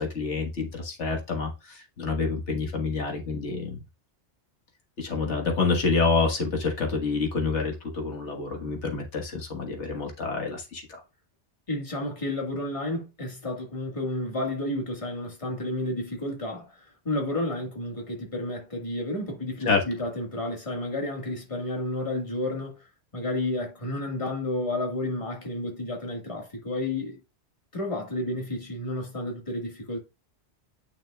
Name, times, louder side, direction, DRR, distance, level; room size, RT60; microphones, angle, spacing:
voice 1, 0.0-3.8 5.0-11.0 19.7-19.8, left 4 dB, 90° left, 1.8 m, -27 dB
voice 2, 11.7-16.8 17.1-22.7 23.1-27.2 27.7-30.0, left 1 dB, 30° left, 1.8 m, -31 dB
9.0 x 5.9 x 2.3 m
omnidirectional pair, 1.2 m